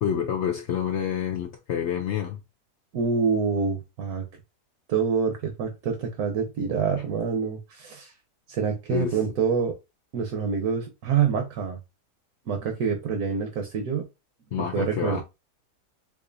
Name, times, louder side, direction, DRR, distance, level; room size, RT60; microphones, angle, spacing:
voice 1, 0.0-2.4 8.9-9.2 14.5-15.2, left 9 dB, 80° left, 0.6 m, -28 dB
voice 2, 2.9-4.2 4.9-8.1 8.5-9.7 10.1-11.8 12.5-14.1 14.6-15.2, right 6 dB, 65° right, 1.2 m, -26 dB
4.7 x 2.5 x 2.6 m
omnidirectional pair, 1.8 m